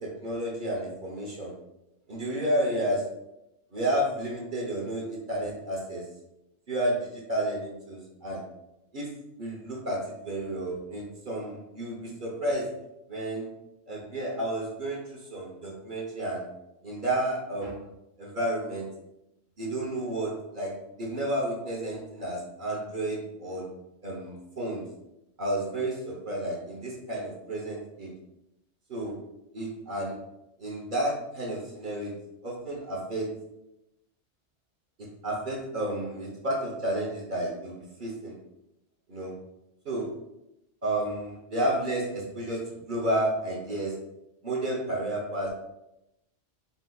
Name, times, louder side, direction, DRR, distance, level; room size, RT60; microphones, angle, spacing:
voice 1, 0.0-1.5 2.1-3.0 3.7-6.0 6.7-8.4 8.9-9.1 9.4-12.6 13.1-13.5 13.9-16.4 16.8-17.8 18.2-18.9 19.6-20.7 21.0-23.6 24.0-24.8 25.4-28.1 28.9-29.1 29.5-30.2 30.6-32.1 32.4-33.3 35.2-37.7 38.0-38.3 39.1-39.3 39.8-40.1 40.8-42.6 42.9-43.9 44.4-45.7, right 1 dB, 45° right, -2 dB, 0.9 m, -31 dB
4.5 x 4.1 x 2.3 m, 0.89 s
omnidirectional pair, 1.3 m